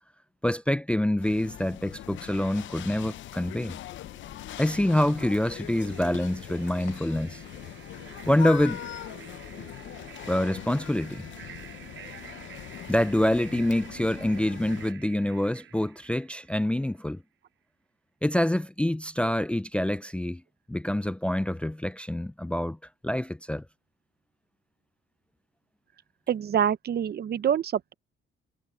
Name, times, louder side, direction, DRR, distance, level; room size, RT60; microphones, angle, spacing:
voice 1, 0.4-3.8 4.6-7.4 8.3-8.8 10.3-11.3 12.9-17.2 18.2-20.4 20.7-22.8 23.0-23.6, left 1 dB, 5° left, 0.4 m, -26 dB
sound 1, 1.2-14.9, left 12 dB, 70° left, 0.7 m, -41 dB
sound 2, 4.0-17.0, right 11 dB, 75° right, 5.1 m, -49 dB
voice 2, 26.3-27.9, right 9 dB, 55° right, 0.9 m, -26 dB
cardioid pair, 90°, 20 cm